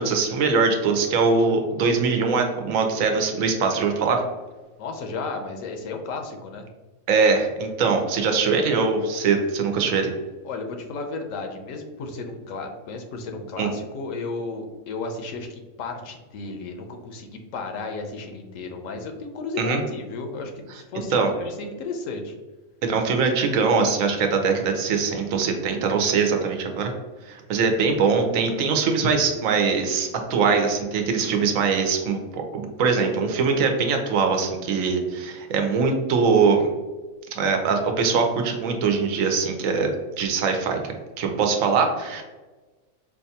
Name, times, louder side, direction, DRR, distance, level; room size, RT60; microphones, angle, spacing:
voice 1, 0.0-4.2 7.1-10.1 13.6-13.7 19.6-19.8 21.1-21.3 22.8-26.9 27.3-36.7 37.3-40.8 41.2-42.2, right 5 dB, 85° right, 4 dB, 1.0 m, -22 dB
voice 2, 4.8-6.7 10.4-22.4, left 3 dB, 80° left, 4 dB, 1.0 m, -33 dB
4.9 x 2.3 x 2.7 m, 1.2 s
omnidirectional pair, 1.4 m